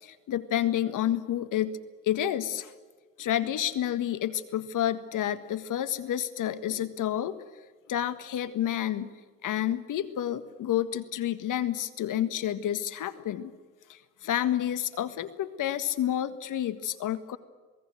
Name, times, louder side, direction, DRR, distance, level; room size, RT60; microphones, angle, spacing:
voice 1, 0.0-1.8 2.0-2.7 3.2-7.4 7.9-9.1 9.4-13.5 13.9-17.4, left 11 dB, 40° left, 12 dB, 1.7 m, -29 dB
28.0 x 19.0 x 7.7 m, 1.4 s
hypercardioid pair, 90°, 47 cm